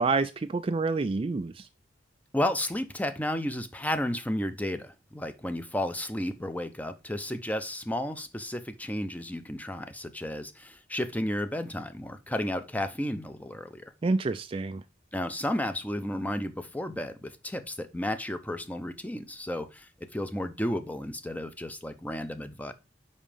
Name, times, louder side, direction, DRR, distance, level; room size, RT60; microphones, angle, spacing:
voice 1, 0.0-1.7 14.0-14.8, right 3 dB, 30° right, 0.4 m, -28 dB
voice 2, 2.3-13.9 15.1-22.7, left 1 dB, 10° left, 0.6 m, -33 dB
5.5 x 5.1 x 5.0 m
head